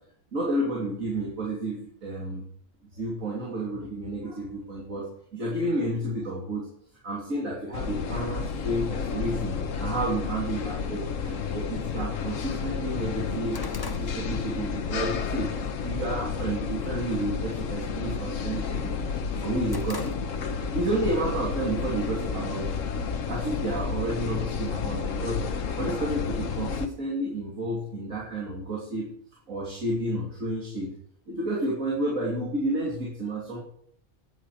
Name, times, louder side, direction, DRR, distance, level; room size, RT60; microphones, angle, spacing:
voice 1, 0.3-2.4 2.9-6.7 7.0-13.6 13.9-15.5 15.8-19.0 19.4-20.2 20.7-22.8 23.3-29.1 29.5-30.9 31.3-33.6, right 1 dB, 80° right, -4 dB, 3.3 m, -31 dB
sound 1, 7.7-26.9, left 5 dB, 75° left, 1.4 m, -31 dB
sound 2, 12.7-15.1 15.5-15.8 16.2-16.7 17.0-17.3 17.6-18.8 19.2-20.7 21.0-21.2 22.1-22.9, left 3 dB, 25° left, 0.6 m, -43 dB
15.0 x 10.0 x 4.9 m, 0.66 s
omnidirectional pair, 1.4 m